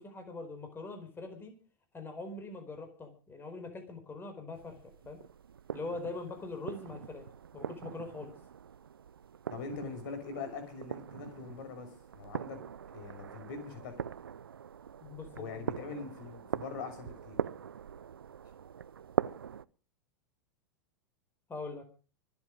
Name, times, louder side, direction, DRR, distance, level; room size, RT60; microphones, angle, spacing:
voice 1, 0.0-1.5 1.9-5.2 5.7-7.2 7.5-8.3 15.0-15.6 21.5-21.8, left 3 dB, 20° left, 6 dB, 4.7 m, -42 dB
sound 1, 4.5-19.7, right 8 dB, 85° right, 0.6 m, -41 dB
voice 2, 9.5-12.6 12.9-14.1 15.3-17.4, left 5 dB, 60° left, 7 dB, 6.2 m, -43 dB
25.0 x 8.5 x 5.3 m, 0.37 s
hypercardioid pair, 100°, 12 cm